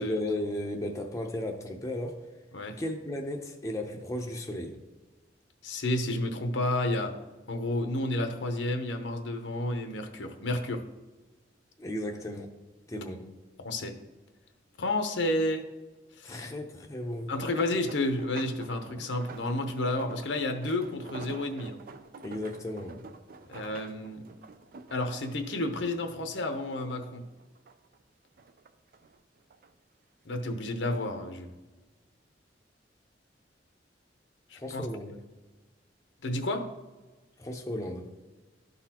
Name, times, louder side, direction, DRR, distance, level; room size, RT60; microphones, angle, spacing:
voice 1, 0.0-2.2 2.8-4.8 11.8-12.5 12.9-13.3 16.2-17.3 22.2-23.0 34.6-35.1 37.4-38.1, left 1 dB, 15° left, 0.6 m, -35 dB
voice 2, 5.6-7.1 7.5-10.8 13.6-13.9 14.8-15.6 16.2-16.4 17.3-21.8 23.5-24.2 24.9-27.2 30.3-31.5 34.5-34.9 36.2-36.6, left 1 dB, 85° left, 0.8 m, -31 dB
sound 1, 17.1-26.7 27.0-28.0 28.4-29.7 30.5-30.8 31.2-31.3, right 4 dB, 50° right, 0.4 m, -48 dB
12.0 x 4.0 x 2.9 m
head